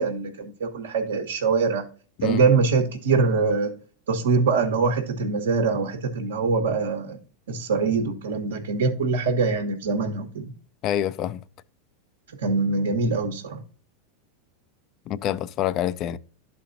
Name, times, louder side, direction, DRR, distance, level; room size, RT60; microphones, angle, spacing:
voice 1, 0.0-1.8 2.2-3.7 4.1-7.2 7.5-10.5 12.4-13.6, right 4 dB, 75° right, 1.1 m, -23 dB
voice 2, 10.8-11.4 15.1-16.2, left 11 dB, 45° left, 0.4 m, -26 dB
12.5 x 4.3 x 2.6 m
hypercardioid pair, 95°, 0 cm